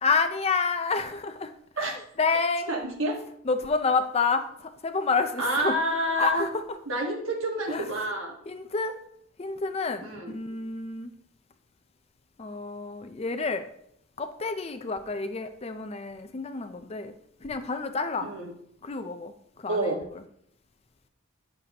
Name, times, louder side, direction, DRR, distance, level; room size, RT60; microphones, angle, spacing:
voice 1, 0.0-1.5 1.8-2.7 3.4-5.8 6.2-6.6 7.7-7.9 8.5-8.9 9.4-11.1 12.4-13.6 14.2-17.1 17.4-18.3 18.8-19.3 19.6-19.9, left 4 dB, 30° left, 9 dB, 0.4 m, -29 dB
voice 2, 2.7-3.2 5.4-6.5 6.9-8.3 10.0-10.4 18.2-18.5 19.7-20.0, right 1 dB, 65° right, 1 dB, 1.5 m, -28 dB
8.8 x 6.6 x 2.9 m, 0.72 s
head